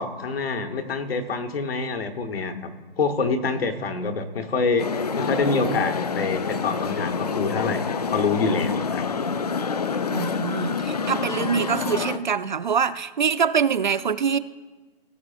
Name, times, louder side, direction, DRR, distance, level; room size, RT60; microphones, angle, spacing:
voice 1, 0.0-9.0, left 4 dB, 85° left, 6 dB, 1.3 m, -26 dB
sound 1, 4.8-12.2, left 5 dB, 45° left, 0.4 m, -27 dB
voice 2, 10.1-14.4, right 7 dB, 55° right, 15 dB, 0.4 m, -24 dB
18.0 x 7.7 x 2.5 m, 1.2 s
hypercardioid pair, 180°, 29 cm